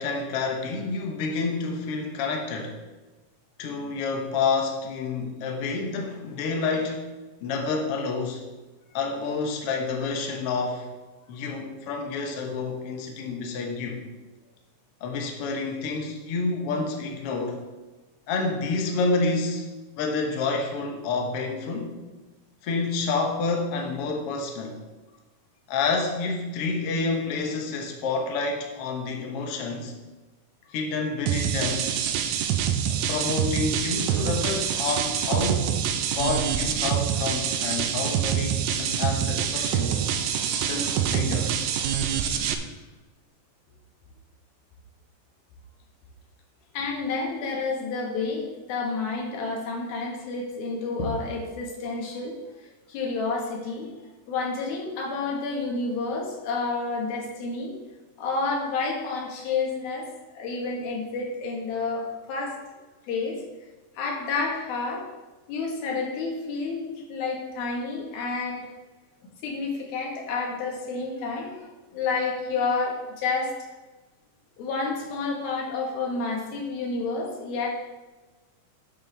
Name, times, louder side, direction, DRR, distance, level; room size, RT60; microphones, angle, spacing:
voice 1, 0.0-2.8 3.6-7.0 7.4-8.4 8.9-10.9 11.3-14.0 15.0-17.6 18.3-19.7 20.0-21.9 22.6-24.8 25.7-29.9 30.7-31.9 32.9-35.7 36.1-40.0 40.5-41.5, left 4 dB, 65° left, 2 dB, 1.5 m, -29 dB
sound 1, 31.3-42.5, right 9 dB, 80° right, 2.3 m, -26 dB
voice 2, 42.1-42.5 46.7-52.4 52.9-53.9 54.3-57.7 58.2-60.1 60.3-62.6 63.1-63.4 64.0-65.0 65.5-68.7 69.4-73.5 74.6-77.7, left 4 dB, 90° left, 0 dB, 3.3 m, -30 dB
10.5 x 7.6 x 3.4 m, 1.2 s
omnidirectional pair, 4.1 m